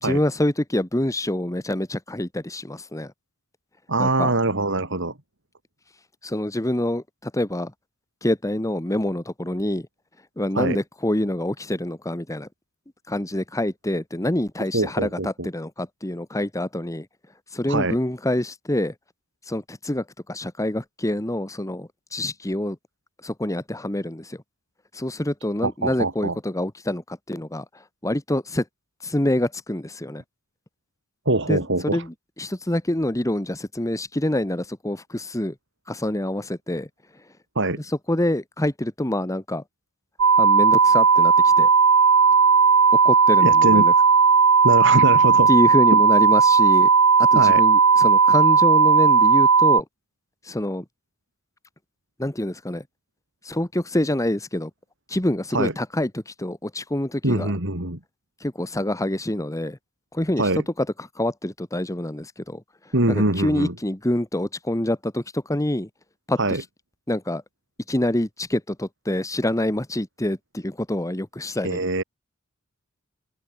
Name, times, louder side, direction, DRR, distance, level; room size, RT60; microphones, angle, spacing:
voice 1, 0.0-3.1 4.0-4.3 6.2-7.7 8.2-9.9 10.4-12.5 13.1-17.1 17.5-18.9 19.5-22.8 23.2-24.4 24.9-28.6 29.0-30.2 31.5-35.5 35.9-36.9 37.8-39.6 40.4-41.7 43.0-43.9 45.5-46.9 47.2-49.8 50.4-50.8 52.2-52.8 53.4-54.7 55.1-57.5 58.4-59.8 60.1-60.5 60.8-62.6 63.1-65.9 66.3-66.6 67.1-67.4 67.9-71.8, left 1 dB, 15° left, 1.4 m, -26 dB
voice 2, 3.9-5.1 10.5-10.8 14.7-15.5 17.7-18.0 25.6-26.4 31.3-32.0 37.6-37.8 43.4-43.8 44.6-45.5 45.9-46.0 47.4-47.6 55.5-55.7 57.2-58.0 60.4-60.6 62.9-63.7 66.4-66.6 71.6-72.0, right 2 dB, 60° right, 4.2 m, -23 dB
sound 1, 40.2-49.8, right 5 dB, 80° right, 1.6 m, -16 dB
open air
head